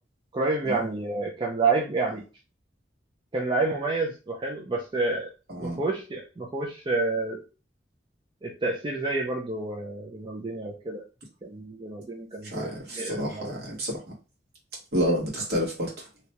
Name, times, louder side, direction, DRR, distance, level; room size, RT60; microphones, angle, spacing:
voice 1, 0.3-2.2 3.3-5.3 5.6-7.4 8.4-11.0 11.4-13.6, right 3 dB, 25° right, 0.5 m, -29 dB
voice 2, 12.5-14.0 14.9-15.9, equal, 60° right, 1.3 m, -29 dB
2.9 x 2.2 x 2.9 m
head